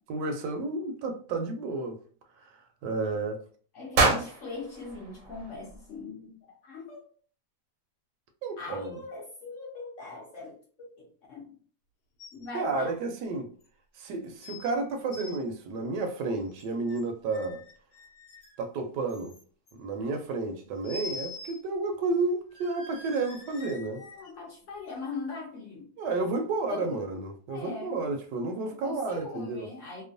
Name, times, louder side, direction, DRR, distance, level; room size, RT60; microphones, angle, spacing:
voice 1, 0.1-2.0 2.4-2.5 2.8-3.4 8.4-9.0 12.5-13.5 14.0-17.6 18.6-19.3 19.8-24.0 26.0-29.7, right 3 dB, 80° right, 1.2 m, -31 dB
voice 2, 3.7-7.1 8.6-11.5 12.3-12.9 24.0-25.9 26.7-27.1 27.5-28.0 28.6-30.0, left 3 dB, 65° left, 0.8 m, -40 dB
sound 1, 3.9-6.1, right 3 dB, 65° right, 0.9 m, -28 dB
sound 2, 12.2-12.5 12.8-12.9 13.6-13.7 14.4-14.7 15.0-15.4 16.5-17.0 17.3-18.6 19.1-19.7 20.8-21.6 21.9-22.0 22.5-24.3 24.9-25.0, left 3 dB, 80° left, 1.2 m, -44 dB
2.9 x 2.1 x 2.5 m
omnidirectional pair, 1.8 m